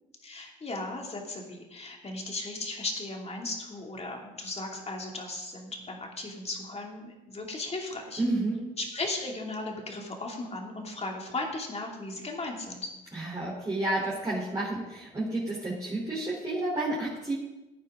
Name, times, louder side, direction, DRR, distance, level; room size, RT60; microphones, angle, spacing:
voice 1, 0.2-8.2 8.8-12.9, left 2 dB, 30° left, 0 dB, 2.8 m, -36 dB
voice 2, 8.2-8.6 13.1-17.3, right 2 dB, 20° right, -6 dB, 3.8 m, -30 dB
16.5 x 9.1 x 3.8 m, 1.1 s
cardioid pair, 90°, 20 cm